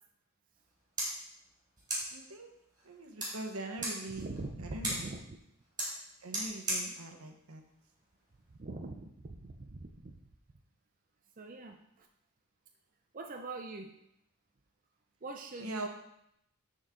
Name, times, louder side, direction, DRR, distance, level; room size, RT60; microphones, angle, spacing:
sound 1, 0.5-8.6, right 1 dB, 20° right, 3.5 m, -41 dB
voice 1, 2.1-2.5 2.8-4.3 4.6-5.1 6.2-7.6 15.6-15.9, right 2 dB, 80° right, 3 dB, 1.2 m, -42 dB
voice 2, 4.2-5.4 8.5-10.2 11.4-12.1 13.1-13.9 15.2-15.9, right 2 dB, 40° right, 3 dB, 0.5 m, -43 dB
12.5 x 4.5 x 3.7 m, 0.77 s
head